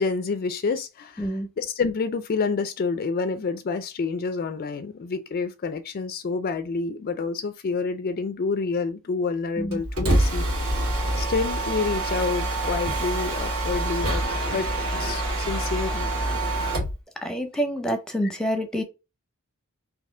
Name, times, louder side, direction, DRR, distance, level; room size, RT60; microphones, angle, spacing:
voice 1, 0.0-10.5 11.1-16.1 18.2-18.3, left 4 dB, 45° left, 0.4 m, -28 dB
voice 2, 1.2-1.5 9.6-9.8 17.2-18.8, equal, 5° left, 0.7 m, -27 dB
Mechanisms, 9.7-17.0, right 1 dB, 70° right, 2.0 m, -26 dB
4.1 x 2.7 x 3.6 m
head